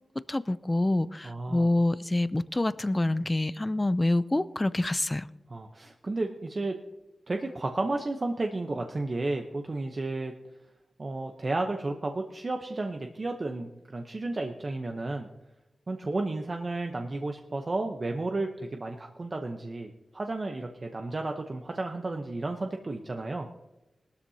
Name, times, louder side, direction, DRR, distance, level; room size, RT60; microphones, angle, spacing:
voice 1, 0.3-5.2, left 1 dB, 20° left, 16 dB, 0.4 m, -26 dB
voice 2, 1.2-1.7 5.5-6.8 7.3-10.3 11.0-15.3 15.9-23.5, right 2 dB, 40° right, 4 dB, 0.8 m, -32 dB
18.5 x 13.0 x 2.8 m, 0.98 s
wide cardioid pair, 90°, 0 cm